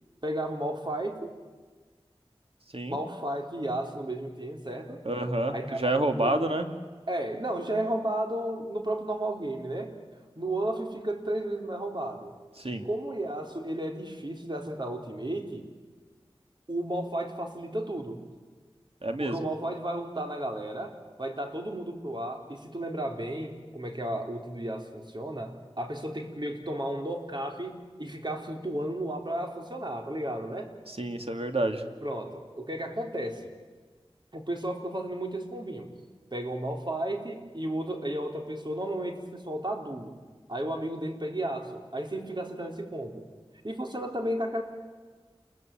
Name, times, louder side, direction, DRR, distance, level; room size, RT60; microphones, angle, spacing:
voice 1, 0.2-1.3 2.9-5.0 5.5-6.4 7.1-10.0 10.4-12.3 12.8-15.7 16.7-18.2 19.2-20.9 21.2-30.7 32.0-33.5 34.3-35.9 36.3-40.1 40.5-43.2 43.6-44.6, right 1 dB, 50° right, 2 dB, 4.1 m, -33 dB
voice 2, 5.0-6.7 12.6-12.8 19.0-19.5 31.0-31.9, right 1 dB, 70° right, 5 dB, 2.5 m, -28 dB
29.0 x 22.5 x 9.2 m, 1.4 s
wide cardioid pair, 45°, 10 cm